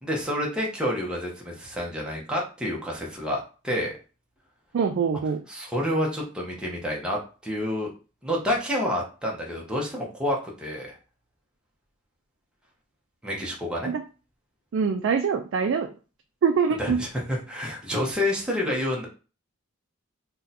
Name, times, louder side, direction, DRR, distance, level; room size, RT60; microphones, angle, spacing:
voice 1, 0.0-3.9 5.5-7.9 8.2-11.0 13.2-13.9 16.8-19.1, left 1 dB, 5° right, -2 dB, 0.7 m, -29 dB
voice 2, 4.7-5.4 13.9-14.0 14.7-15.9 16.4-17.0, right 6 dB, 60° right, 5 dB, 0.3 m, -24 dB
2.7 x 2.2 x 3.9 m, 0.35 s
head